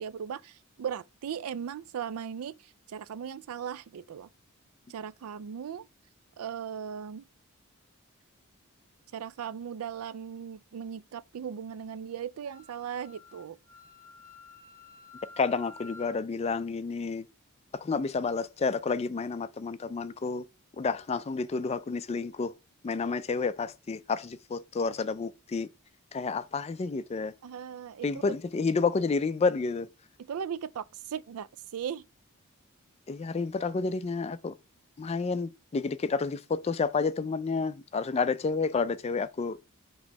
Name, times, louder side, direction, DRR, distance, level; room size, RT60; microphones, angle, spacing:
voice 1, 0.0-2.6 2.9-4.3 4.9-5.9 6.4-7.2 9.1-13.6 27.4-28.4 30.2-31.5 31.7-32.0, right 8 dB, 85° right, 0.4 m, -38 dB
Wind instrument woodwind instrument, 12.4-16.2, left 2 dB, 55° right, 1.6 m, -51 dB
voice 2, 15.4-17.3 17.7-20.5 20.8-22.5 22.8-25.7 26.1-27.3 28.0-29.9 33.1-34.6 35.0-39.6, left 4 dB, 30° left, 0.3 m, -30 dB
6.0 x 3.1 x 5.3 m
head